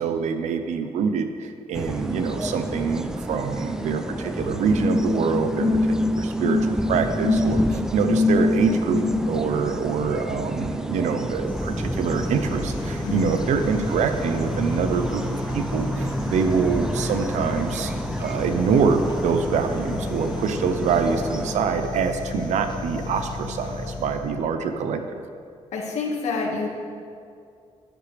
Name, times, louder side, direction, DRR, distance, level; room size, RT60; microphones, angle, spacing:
voice 1, 0.0-5.7 6.1-15.3 15.5-17.9 18.2-25.2, right 5 dB, 90° right, 7 dB, 0.8 m, -25 dB
sound 1, 1.7-21.6, right 1 dB, 5° right, 0.4 m, -31 dB
sound 2, 4.7-9.5, left 2 dB, 50° right, 3.0 m, -23 dB
sound 3, 11.5-24.5, left 3 dB, 40° left, 1.1 m, -34 dB
voice 2, 25.7-26.7, left 4 dB, 75° left, -1 dB, 1.8 m, -27 dB
13.0 x 10.0 x 3.4 m, 2.4 s
wide cardioid pair, 165°, 12 cm